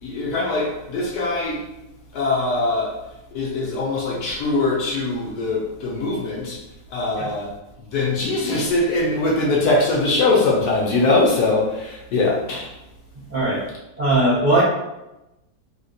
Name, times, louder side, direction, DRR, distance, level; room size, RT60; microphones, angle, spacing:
voice 1, 0.0-1.6 2.1-3.0 3.3-6.6 6.9-7.5 7.9-12.7, left 2 dB, 70° left, -2 dB, 1.1 m, -22 dB
voice 2, 13.3-13.6 14.0-14.6, right 2 dB, 50° right, -10 dB, 0.5 m, -19 dB
3.6 x 2.4 x 2.6 m, 0.94 s
omnidirectional pair, 1.9 m